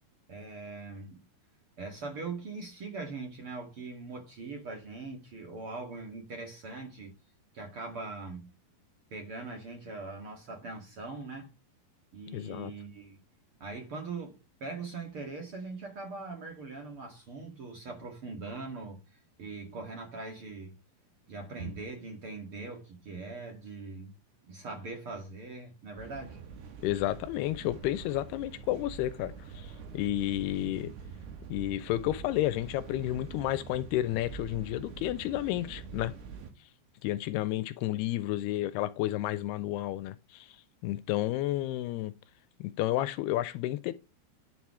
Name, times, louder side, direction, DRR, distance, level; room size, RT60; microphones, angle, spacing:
voice 1, 0.3-1.2 1.8-7.1 7.5-8.5 9.1-11.5 12.1-13.2 13.6-20.8 21.3-24.1 24.5-26.4, right 3 dB, 45° right, 2.1 m, -41 dB
voice 2, 12.3-12.7 26.8-30.9 31.5-36.1 37.0-40.5 40.8-42.1 42.6-43.9, left 14 dB, 85° left, 2.7 m, -31 dB
sound 1, 26.0-36.5, right 6 dB, 90° right, 4.2 m, -45 dB
10.5 x 5.9 x 4.7 m
omnidirectional pair, 4.6 m